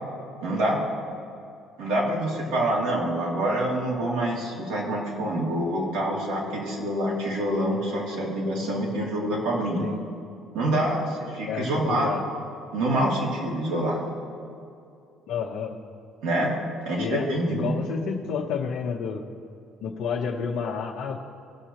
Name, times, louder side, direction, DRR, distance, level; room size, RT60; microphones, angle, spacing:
voice 1, 0.4-0.8 1.8-9.8 10.5-12.2 12.7-14.0 16.2-16.6 16.8-17.7, right 1 dB, 85° right, -4 dB, 2.4 m, -26 dB
voice 2, 11.4-12.2 15.3-15.8 17.0-19.3 19.8-21.2, left 6 dB, 75° left, -3 dB, 0.9 m, -30 dB
18.5 x 6.4 x 2.9 m, 2.5 s
cardioid pair, 95°, 0 cm